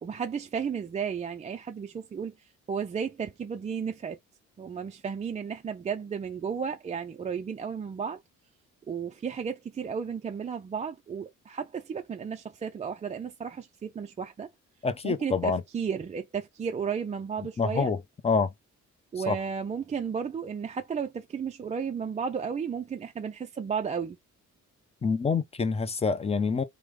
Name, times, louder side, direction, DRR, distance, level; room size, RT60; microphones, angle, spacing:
voice 1, 0.0-2.3 2.7-4.2 4.6-8.2 8.9-14.5 15.0-17.9 19.1-24.2, right 6 dB, 25° right, 0.3 m, -33 dB
voice 2, 14.8-15.6 17.6-18.0 18.2-18.5 19.3-19.4 25.0-26.6, left 5 dB, 20° left, 0.6 m, -26 dB
3.3 x 2.1 x 3.1 m
cardioid pair, 90°, 30 cm